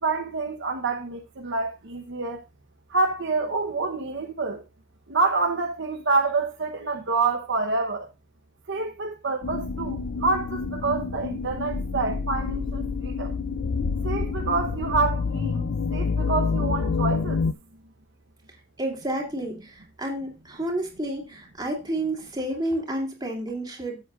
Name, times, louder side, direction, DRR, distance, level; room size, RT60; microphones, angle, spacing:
voice 1, 0.0-2.4 2.9-4.6 5.1-8.1 8.7-13.3 14.0-17.4, right 3 dB, 60° right, 1.0 m, -27 dB
sound 1, 9.4-17.5, left 4 dB, 60° left, 0.5 m, -28 dB
voice 2, 18.8-24.0, right 1 dB, 20° right, 2.8 m, -30 dB
13.5 x 7.8 x 2.5 m
head